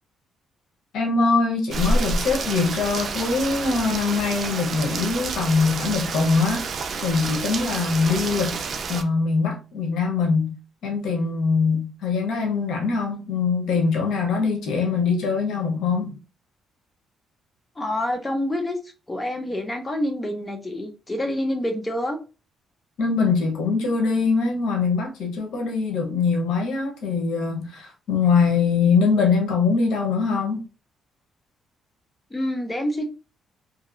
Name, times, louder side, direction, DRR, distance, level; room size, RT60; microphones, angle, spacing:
voice 1, 0.9-6.7 7.0-8.6 8.9-10.6 10.8-16.1 23.0-30.6, left 4 dB, 80° left, 0.9 m, -22 dB
Rain, 1.7-9.0, right 3 dB, 50° right, 0.5 m, -28 dB
voice 2, 17.8-18.8 19.1-22.2 32.3-33.0, left 1 dB, 20° left, 0.8 m, -27 dB
2.9 x 2.8 x 2.5 m
cardioid pair, 90°, 0 cm